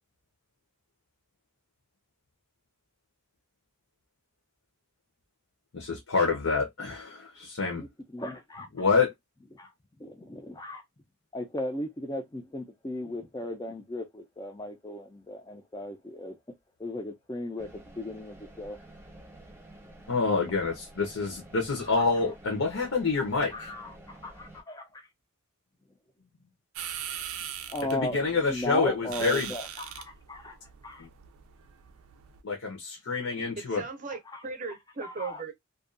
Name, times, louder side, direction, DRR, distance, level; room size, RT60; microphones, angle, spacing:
voice 1, 5.7-7.9 8.7-9.1 20.1-23.7 27.9-29.5 31.0-31.1 32.4-33.8, left 4 dB, 80° left, 0.8 m, -27 dB
voice 2, 8.1-8.7 9.5-9.7 10.0-10.8 11.3-16.4 16.8-18.8 23.5-25.1 27.7-28.2 28.5-30.6 30.8-31.1 34.3-34.4 35.0-35.5, left 1 dB, 15° left, 0.4 m, -36 dB
sound 1, 17.6-24.6, right 1 dB, 10° right, 0.8 m, -50 dB
sound 2, 26.8-32.4, right 9 dB, 85° right, 0.4 m, -41 dB
voice 3, 33.6-35.5, right 4 dB, 40° right, 0.5 m, -37 dB
2.6 x 2.3 x 2.4 m
head